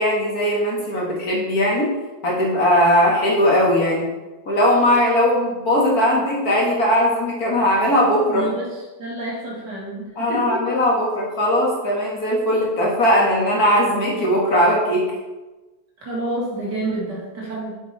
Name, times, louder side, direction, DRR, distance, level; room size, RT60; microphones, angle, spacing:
voice 1, 0.0-1.9 2.2-4.1 4.5-8.5 10.2-15.0, equal, 55° left, -3 dB, 2.6 m, -19 dB
voice 2, 8.3-10.6 16.0-17.7, right 2 dB, 75° right, -4 dB, 3.0 m, -29 dB
8.2 x 6.9 x 4.3 m, 1.1 s
omnidirectional pair, 1.9 m